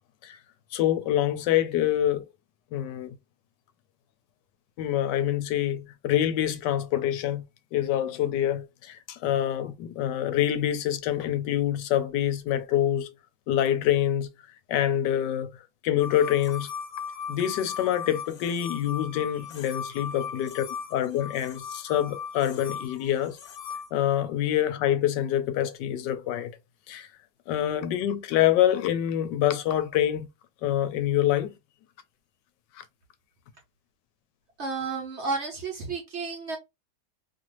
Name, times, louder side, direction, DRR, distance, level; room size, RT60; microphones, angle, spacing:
voice 1, 0.7-2.3 2.7-3.2 4.8-7.4 7.7-13.1 13.5-14.3 14.7-15.5 15.8-16.7 17.3-23.4 23.9-26.5 26.9-27.1 27.5-30.3 30.6-31.5 32.8-32.9, left 11 dB, 90° left, 1.2 m, -26 dB
sound 1, 16.0-23.9, left 7 dB, 70° left, 1.1 m, -38 dB
voice 2, 34.6-36.6, right 4 dB, 50° right, 0.9 m, -32 dB
2.8 x 2.5 x 2.9 m
omnidirectional pair, 1.8 m